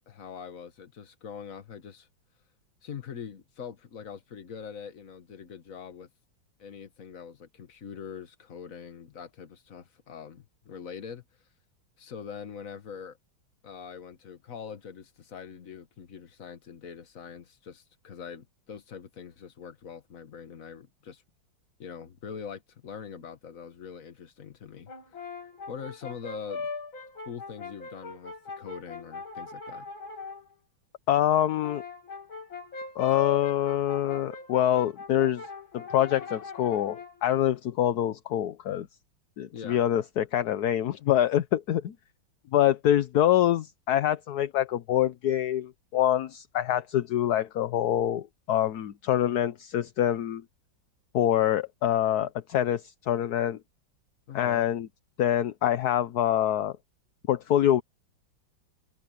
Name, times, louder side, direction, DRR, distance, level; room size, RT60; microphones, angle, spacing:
voice 1, 0.1-2.1 2.8-6.1 6.6-11.2 12.0-13.2 13.6-21.2 21.8-25.3 25.7-26.7 27.2-29.9 39.5-39.8 54.3-54.8, left 7 dB, 45° left, 1.7 m, -43 dB
Brass instrument, 24.9-30.4 31.4-37.2, left 4 dB, 85° left, 4.4 m, -41 dB
voice 2, 31.1-31.8 33.0-35.4 35.7-38.9 39.4-41.9 42.5-50.4 51.1-53.6 54.3-54.9 55.2-56.7 57.3-57.8, left 11 dB, 60° left, 1.2 m, -25 dB
omnidirectional pair, 2.1 m